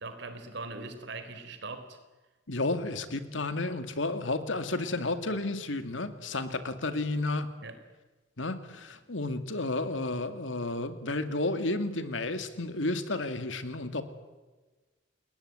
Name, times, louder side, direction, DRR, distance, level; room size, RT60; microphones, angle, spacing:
voice 1, 0.0-2.0 7.6-7.8, right 3 dB, 65° right, 9 dB, 3.9 m, -41 dB
voice 2, 2.5-7.5 8.4-14.0, left 2 dB, 85° left, 9 dB, 2.4 m, -32 dB
30.0 x 20.5 x 9.5 m, 1.2 s
head